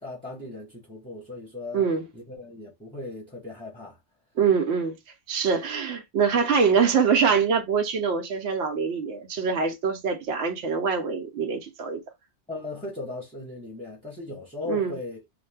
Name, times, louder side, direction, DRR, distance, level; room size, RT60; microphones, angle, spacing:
voice 1, 0.0-1.8 2.1-4.0 12.5-15.2, left 2 dB, 5° left, 0.6 m, -37 dB
voice 2, 1.7-2.0 4.4-5.0 5.3-12.0 14.7-15.0, right 6 dB, 90° right, 0.9 m, -24 dB
2.5 x 2.2 x 3.2 m
omnidirectional pair, 1.1 m